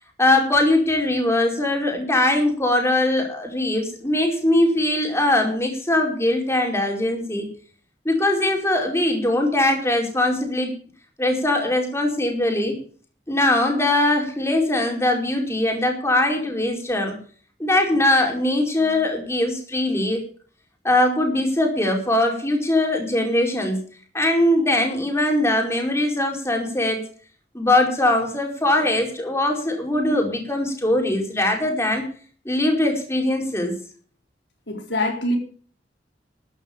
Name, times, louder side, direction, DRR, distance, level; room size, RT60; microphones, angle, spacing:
voice 1, 0.2-7.4 8.0-10.7 11.2-12.7 13.3-17.2 17.6-20.2 20.8-23.8 24.1-27.0 27.5-32.0 32.4-33.7, left 1 dB, 15° left, 4.8 m, -21 dB
voice 2, 34.7-35.4, left 1 dB, 85° left, 4.5 m, -24 dB
13.0 x 10.5 x 7.2 m
head